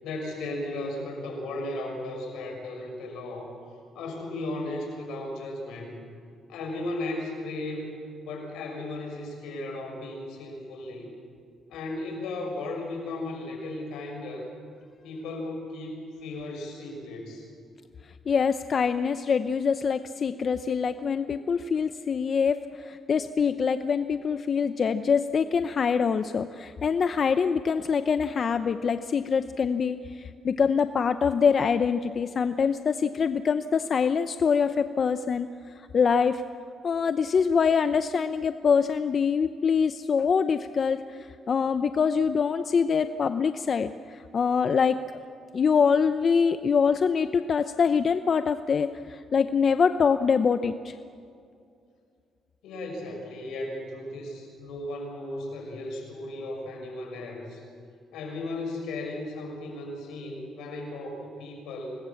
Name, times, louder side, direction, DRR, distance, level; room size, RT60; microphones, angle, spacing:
voice 1, 0.0-3.5 3.9-6.0 6.5-8.0 8.2-11.1 11.7-14.5 15.0-17.5 52.6-57.6 58.1-62.0, left 2 dB, 85° left, 2 dB, 6.3 m, -35 dB
voice 2, 18.3-22.6 22.8-30.0 30.4-35.5 35.9-36.4 36.8-41.0 41.5-43.9 44.3-45.0 45.5-50.9, left 6 dB, 50° left, 10 dB, 0.8 m, -24 dB
25.5 x 20.0 x 7.2 m, 2.4 s
cardioid pair, 90°, 0 cm